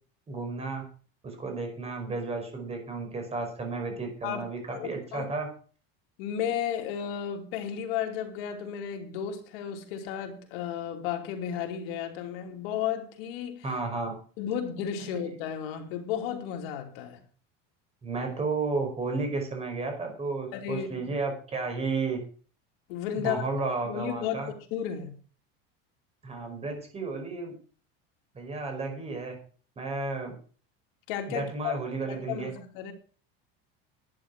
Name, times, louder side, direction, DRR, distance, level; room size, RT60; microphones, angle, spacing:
voice 1, 0.3-0.8 1.2-5.5 13.6-14.2 18.0-22.2 23.2-24.5 26.2-27.5 28.3-29.3 29.8-30.3 31.3-32.5, right 3 dB, 20° right, 5.2 m, -32 dB
voice 2, 4.2-5.3 6.2-13.6 14.4-17.2 20.5-21.1 22.9-23.4 23.9-25.2 31.1-31.8 32.1-32.9, left 9 dB, 75° left, 2.9 m, -33 dB
11.0 x 10.0 x 6.1 m
cardioid pair, 150°, 30 cm